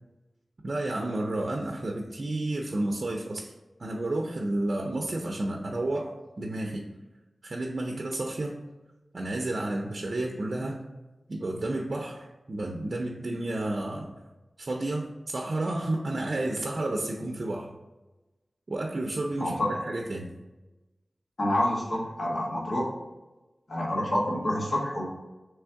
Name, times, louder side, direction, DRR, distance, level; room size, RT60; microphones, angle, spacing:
voice 1, 0.6-3.5 3.8-6.8 7.4-8.5 9.1-10.8 11.3-14.1 14.6-17.8 18.7-20.3, right 2 dB, 60° right, 1 dB, 0.5 m, -31 dB
voice 2, 21.4-22.9 23.7-25.1, left 1 dB, 75° left, -3 dB, 1.3 m, -27 dB
3.4 x 3.2 x 4.5 m, 1.1 s
wide cardioid pair, 65°, 0 cm